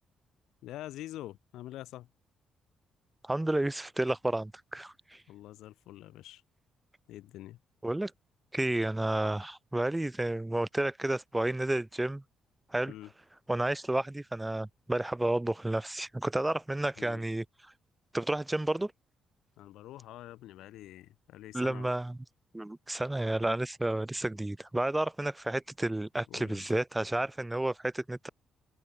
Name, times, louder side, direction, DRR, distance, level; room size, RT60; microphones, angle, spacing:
voice 1, 0.6-2.1 5.3-6.4 7.1-7.6 12.9-13.1 17.0-17.2 19.6-21.9 26.3-26.7, left 14 dB, 85° left, 2.2 m, -46 dB
voice 2, 3.2-5.2 7.8-8.1 8.5-12.2 12.7-12.9 13.5-17.4 18.1-18.9 21.5-22.2 22.5-28.3, right 1 dB, 10° right, 0.7 m, -31 dB
cardioid pair, 90°, 0 cm